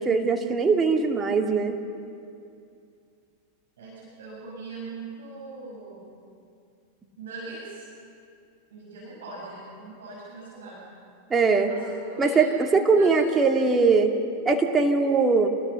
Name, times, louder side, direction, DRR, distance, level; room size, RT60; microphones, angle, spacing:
voice 1, 0.0-1.8 11.3-11.7 12.2-14.1 14.5-15.5, right 4 dB, 15° right, 2 dB, 2.3 m, -21 dB
voice 2, 3.8-6.1 7.2-7.9 8.7-10.8 11.7-12.5 12.9-13.4, right 2 dB, 60° right, -5 dB, 6.3 m, -40 dB
27.5 x 20.5 x 6.7 m, 2.5 s
figure-of-eight pair, 90°, 0 cm